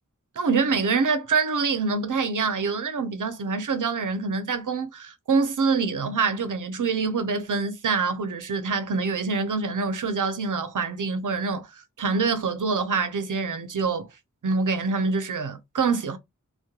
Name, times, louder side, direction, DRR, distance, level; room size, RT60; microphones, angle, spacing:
voice 1, 0.4-11.7 12.0-14.1 14.4-16.2, right 4 dB, 80° right, 0.6 m, -25 dB
2.3 x 2.1 x 2.8 m
wide cardioid pair, 60°, 31 cm